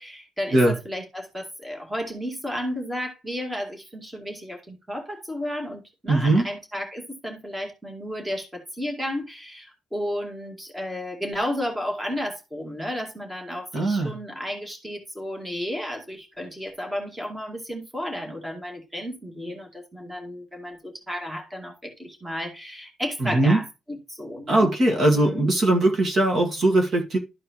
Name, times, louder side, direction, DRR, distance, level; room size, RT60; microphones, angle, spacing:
voice 1, 0.0-24.8 25.1-25.6, equal, 10° right, 2.1 m, -33 dB
voice 2, 6.1-6.5 13.7-14.2 23.2-23.6 24.5-27.2, right 2 dB, 40° right, 2.0 m, -20 dB
12.5 x 4.6 x 3.1 m
cardioid pair, 145°, 0 cm